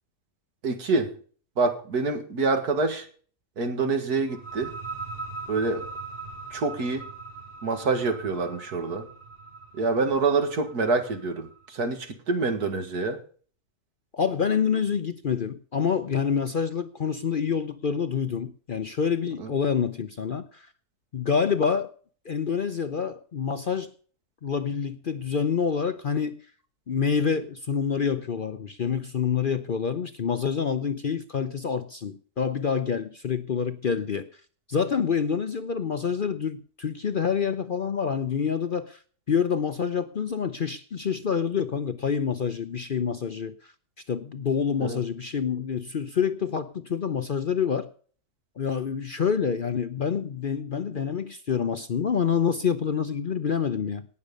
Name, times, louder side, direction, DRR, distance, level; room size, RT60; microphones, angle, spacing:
voice 1, 0.6-1.1 1.6-3.1 3.6-4.8 5.5-5.9 6.5-7.1 7.6-9.1 9.7-13.2 19.4-19.5 44.8-45.0, right 3 dB, 90° right, 2.3 m, -26 dB
sound 1, 4.3-11.8, right 4 dB, 40° right, 3.6 m, -41 dB
voice 2, 14.1-20.7 21.1-21.9 22.2-23.9 24.4-26.4 26.9-34.3 34.7-39.0 39.3-43.7 44.1-47.9 48.6-54.1, left 6 dB, 50° left, 0.6 m, -27 dB
18.0 x 6.7 x 5.3 m
omnidirectional pair, 1.6 m